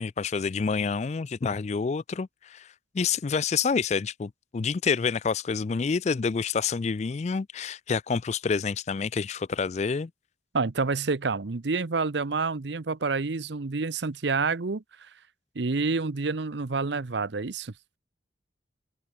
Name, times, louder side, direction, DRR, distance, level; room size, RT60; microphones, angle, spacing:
voice 1, 0.0-2.7 2.9-10.1, left 5 dB, 35° left, 0.3 m, -28 dB
voice 2, 10.5-15.1 15.5-17.7, right 4 dB, 65° right, 0.8 m, -28 dB
open air
head